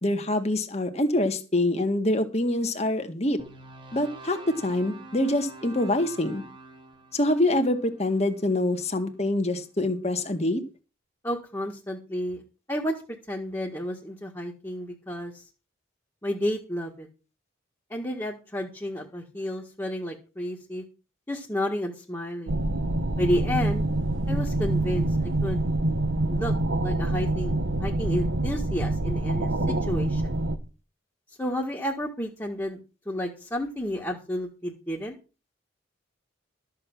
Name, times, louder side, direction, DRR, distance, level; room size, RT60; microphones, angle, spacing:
voice 1, 0.0-3.4 3.9-6.4 7.1-10.6, left 1 dB, 35° left, 6 dB, 1.8 m, -25 dB
sound 1, 3.4-9.6, right 3 dB, 25° right, 1.9 m, -47 dB
voice 2, 11.2-12.4 12.7-13.0 13.3-15.4 16.2-17.1 17.9-20.8 21.3-22.6 23.2-23.9 24.3-25.6 26.3-26.5 26.8-27.5 27.8-30.4 31.4-32.8 33.1-35.1, equal, 15° left, -2 dB, 1.7 m, -31 dB
sound 2, 22.5-30.6, right 2 dB, 85° right, 1.5 m, -26 dB
13.5 x 7.7 x 6.1 m, 0.32 s
head